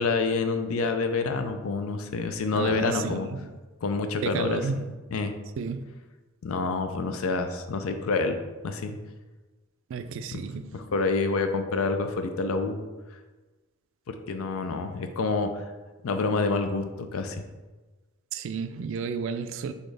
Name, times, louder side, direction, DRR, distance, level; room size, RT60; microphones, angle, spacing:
voice 1, 0.0-3.3 3.8-4.9 5.1-5.3 6.4-8.4 8.6-9.0 10.3-10.4 10.7-12.9 14.1-15.6 16.0-17.4, left 3 dB, 80° left, 0.4 m, -27 dB
voice 2, 2.5-3.6 4.2-4.9 5.6-5.8 9.9-10.9 18.3-19.7, right 5 dB, 60° right, 0.3 m, -32 dB
4.2 x 3.5 x 3.3 m
head